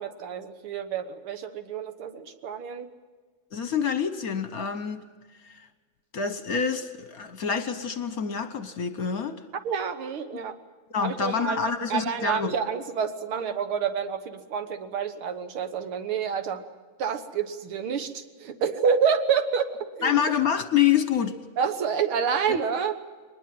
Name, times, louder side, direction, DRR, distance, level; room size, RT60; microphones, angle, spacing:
voice 1, 0.0-2.9 9.6-10.6 11.0-16.6 17.0-20.2 21.6-23.0, right 7 dB, 85° right, 8 dB, 2.2 m, -28 dB
voice 2, 3.5-5.0 5.4-5.7 6.1-9.4 10.9-12.5 20.0-21.4 22.5-22.6, left 8 dB, 55° left, 10 dB, 1.2 m, -27 dB
22.0 x 20.0 x 7.7 m, 1.4 s
omnidirectional pair, 2.3 m